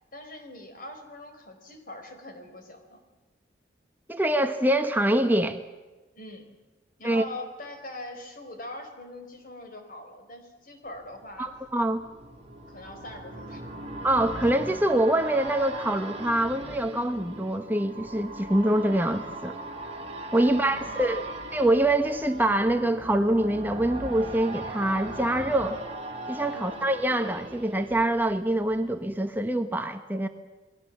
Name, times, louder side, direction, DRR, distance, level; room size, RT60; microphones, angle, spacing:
voice 1, 0.1-3.0 6.2-6.5 7.0-11.5 12.7-13.7 20.4-21.2 26.5-26.6, left 1 dB, 45° left, 6 dB, 4.7 m, -42 dB
voice 2, 4.1-5.6 7.0-7.2 11.4-12.0 14.0-19.6 20.3-21.3 21.5-25.8 26.3-30.3, right 1 dB, 10° right, 6 dB, 1.0 m, -25 dB
sound 1, 11.0-28.8 29.1-29.2, right 2 dB, 35° right, 4.5 m, -39 dB
29.5 x 21.0 x 7.5 m, 1.2 s
head